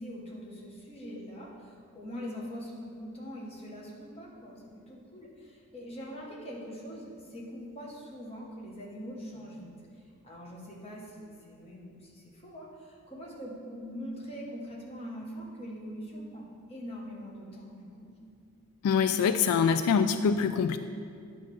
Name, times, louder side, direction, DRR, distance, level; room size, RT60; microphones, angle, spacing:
voice 1, 0.0-9.7 10.2-18.1, equal, 25° left, -3 dB, 1.3 m, -43 dB
voice 2, 18.8-20.8, left 6 dB, 85° left, 12 dB, 0.3 m, -24 dB
9.6 x 3.2 x 6.8 m, 2.3 s
head